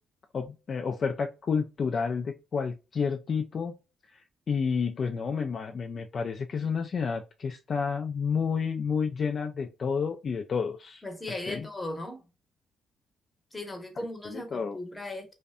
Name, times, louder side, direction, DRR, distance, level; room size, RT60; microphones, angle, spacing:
voice 1, 0.3-3.8 4.5-11.0 11.5-11.7 14.3-14.8, left 5 dB, 50° left, 0.3 m, -30 dB
voice 2, 11.0-12.2 13.5-15.3, left 1 dB, 15° left, 0.8 m, -37 dB
2.5 x 2.1 x 2.4 m
cardioid pair, 90°, 0 cm